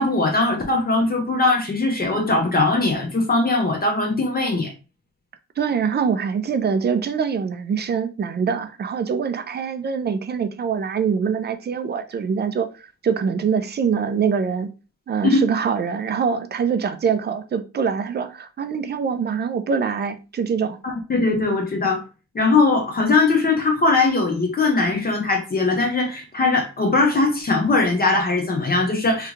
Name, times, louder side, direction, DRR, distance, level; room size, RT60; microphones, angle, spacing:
voice 1, 0.0-4.7 15.2-15.4 20.8-22.0 22.3-29.3, left 3 dB, 30° left, 0.8 m, -20 dB
voice 2, 5.6-14.7 15.1-20.8, right 6 dB, 35° right, 0.4 m, -24 dB
3.4 x 2.3 x 3.0 m
cardioid pair, 90°, 30 cm